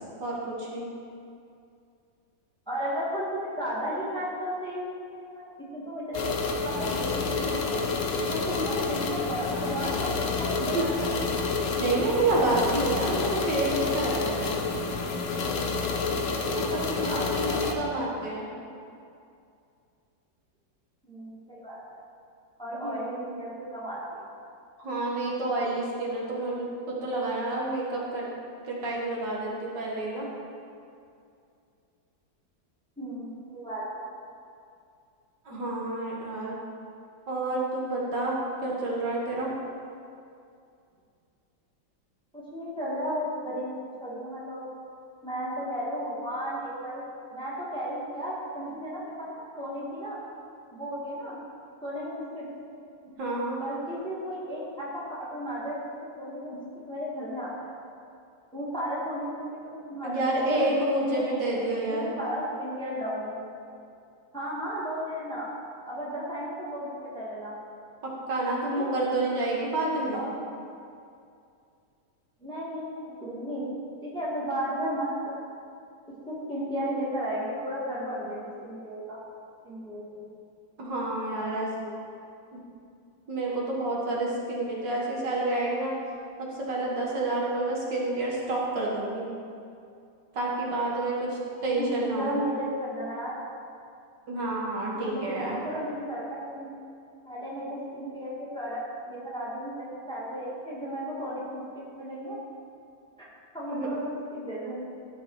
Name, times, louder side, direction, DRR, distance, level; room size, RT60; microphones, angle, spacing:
voice 1, 0.2-0.9 10.7-10.8 11.8-14.5 16.5-18.5 22.8-23.2 24.8-28.3 28.6-30.3 35.5-36.6 37.3-38.4 38.6-39.5 53.2-53.6 60.0-62.1 68.0-70.2 80.8-81.7 82.5-82.6 83.3-85.9 86.4-89.3 90.3-92.4 94.3-95.6 103.7-103.9, right 2 dB, 70° right, -4 dB, 2.1 m, -29 dB
voice 2, 2.7-7.7 8.3-11.4 13.0-13.5 17.0-18.1 18.5-18.6 21.1-21.8 22.6-24.2 33.0-34.0 42.3-44.6 45.2-47.0 47.3-50.2 50.7-51.4 51.8-52.5 53.6-55.9 56.2-57.7 58.5-63.5 64.3-65.5 65.9-67.5 68.7-68.9 70.1-70.5 72.4-73.7 74.0-75.1 76.3-79.2 79.6-80.2 81.3-81.5 81.8-81.9 91.8-93.3 94.9-96.7 97.3-98.8 99.1-101.6 102.0-102.4 103.2-103.3 103.5-104.8, equal, 5° left, -7 dB, 1.6 m, -34 dB
sound 1, 6.1-17.7, left 4 dB, 55° left, 0.9 m, -29 dB
12.0 x 5.4 x 4.7 m, 2.5 s
omnidirectional pair, 2.0 m